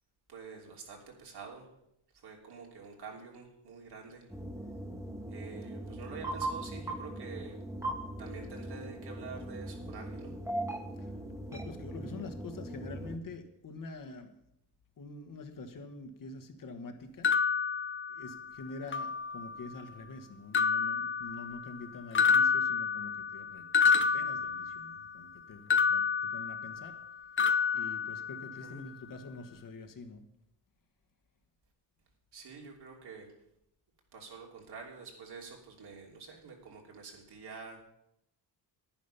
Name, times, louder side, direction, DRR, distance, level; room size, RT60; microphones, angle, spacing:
voice 1, 0.3-1.7 2.1-4.3 5.3-7.6 8.2-10.3 28.6-28.8 32.3-33.3 34.1-37.8, right 5 dB, 65° right, 0 dB, 3.1 m, -47 dB
sound 1, 4.3-13.2, right 1 dB, 5° right, 1.4 m, -40 dB
voice 2, 11.5-14.3 15.0-17.3 18.1-27.0 27.7-30.2, left 3 dB, 50° left, 6 dB, 1.4 m, -46 dB
sound 2, 17.2-18.5 18.9-19.7 20.5-21.8 22.1-25.1 25.7-27.1 27.4-28.7, left 6 dB, 30° left, 0.6 m, -29 dB
10.5 x 10.5 x 5.6 m, 0.80 s
cardioid pair, 130°, 43 cm